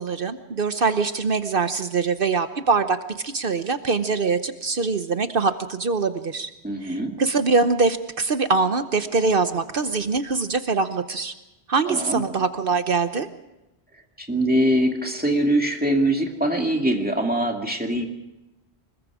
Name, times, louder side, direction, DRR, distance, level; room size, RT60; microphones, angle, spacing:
voice 1, 0.0-3.0 3.2-6.5 6.8-11.3 11.7-13.3, right 4 dB, 55° right, 10 dB, 1.1 m, -23 dB
voice 2, 6.6-7.2 11.9-12.2 14.2-18.0, right 1 dB, 10° right, 2 dB, 2.4 m, -23 dB
25.5 x 21.5 x 4.9 m, 0.96 s
omnidirectional pair, 1.1 m